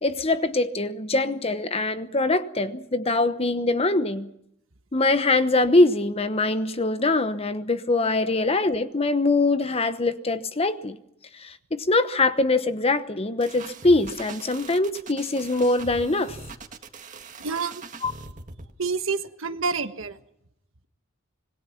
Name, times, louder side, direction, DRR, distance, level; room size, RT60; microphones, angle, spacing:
voice 1, 0.0-4.3 4.9-11.0 11.4-16.4 18.0-18.1, left 2 dB, 30° left, 1.0 m, -23 dB
sound 1, 13.4-18.7, right 3 dB, 35° right, 1.9 m, -42 dB
voice 2, 17.4-17.8 18.8-20.2, right 4 dB, 65° right, 1.4 m, -28 dB
26.0 x 20.5 x 5.8 m
head